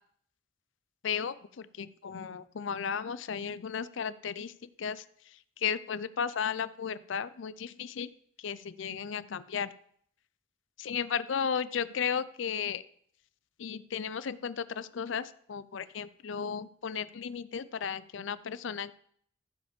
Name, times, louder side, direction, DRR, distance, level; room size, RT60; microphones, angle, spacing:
voice 1, 1.0-4.5 4.8-5.0 5.6-8.1 8.4-9.7 10.8-12.8 13.6-18.9, left 7 dB, 70° left, 16 dB, 0.5 m, -34 dB
15.0 x 5.2 x 5.2 m, 0.63 s
head